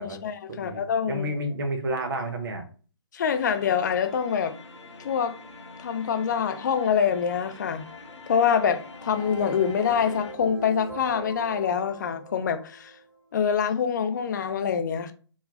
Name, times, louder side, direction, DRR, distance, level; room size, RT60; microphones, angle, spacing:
voice 1, 0.0-1.3 3.1-4.6 5.0-5.4 5.8-7.8 8.3-12.9 13.3-15.1, left 7 dB, 40° left, 0.4 m, -25 dB
voice 2, 0.6-2.6, right 1 dB, 45° right, 0.7 m, -30 dB
sound 1, 3.3-10.3, left 3 dB, 70° left, 0.7 m, -45 dB
sound 2, 8.9-13.2, right 3 dB, 5° right, 1.0 m, -41 dB
2.2 x 2.1 x 3.3 m
figure-of-eight pair, 135°, 15 cm